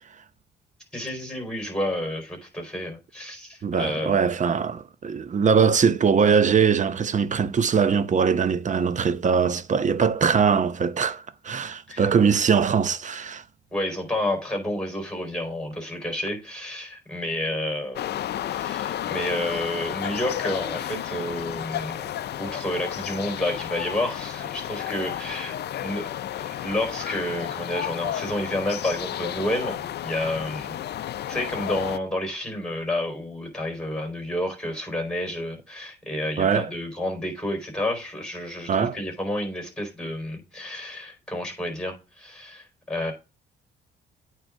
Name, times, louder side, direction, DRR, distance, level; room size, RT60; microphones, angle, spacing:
voice 1, 0.9-4.2 11.9-12.0 13.7-22.1 22.4-26.1 26.4-30.8 31.3-43.1, left 1 dB, 5° left, 4.5 m, -30 dB
voice 2, 3.6-13.4 36.4-36.7 38.7-39.0, right 6 dB, 40° right, 0.7 m, -21 dB
sound 1, 18.0-32.0, left 11 dB, 60° left, 0.5 m, -32 dB
8.9 x 3.8 x 6.4 m
cardioid pair, 90°, 20 cm